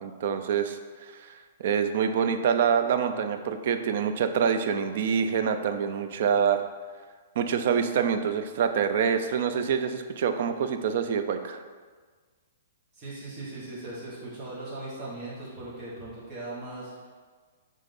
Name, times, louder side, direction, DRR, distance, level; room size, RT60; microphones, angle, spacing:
voice 1, 0.0-1.3 1.6-6.6 7.4-11.6, right 7 dB, 40° right, 8 dB, 0.4 m, -26 dB
voice 2, 12.9-17.1, right 2 dB, 20° right, -8 dB, 1.4 m, -39 dB
5.8 x 3.6 x 5.3 m, 1.5 s
hypercardioid pair, 180°, 0 cm